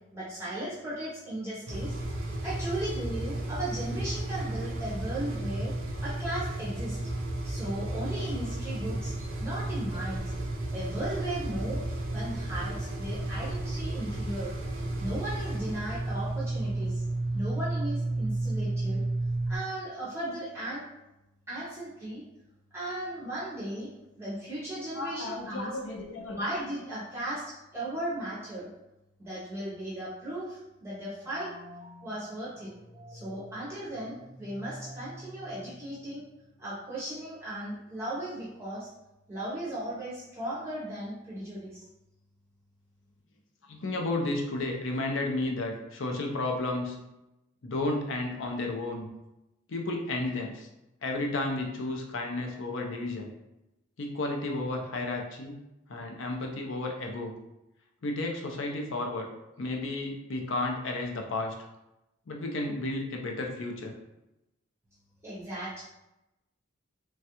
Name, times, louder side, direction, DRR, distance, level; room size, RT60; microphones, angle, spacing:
voice 1, 0.1-5.7 6.0-7.0 7.4-10.2 10.7-11.8 12.1-17.0 17.3-19.0 19.5-20.8 21.5-22.2 22.7-23.9 24.2-25.8 26.3-28.7 29.2-31.5 32.0-32.7 33.1-36.2 36.6-38.9 39.3-41.8 65.2-65.8, right 1 dB, 10° right, -8 dB, 0.6 m, -36 dB
sound 1, 1.7-19.6, right 2 dB, 80° right, 0.6 m, -32 dB
voice 2, 24.9-26.4 43.7-47.0 47.6-49.1 49.7-50.7 51.0-53.3 54.0-55.6 55.9-57.4 58.0-59.3 59.6-61.5 62.3-63.9, left 2 dB, 65° left, 2 dB, 0.5 m, -32 dB
sound 2, 31.0-36.5, equal, 40° left, 0.9 m, -49 dB
3.2 x 2.3 x 2.8 m, 0.92 s
head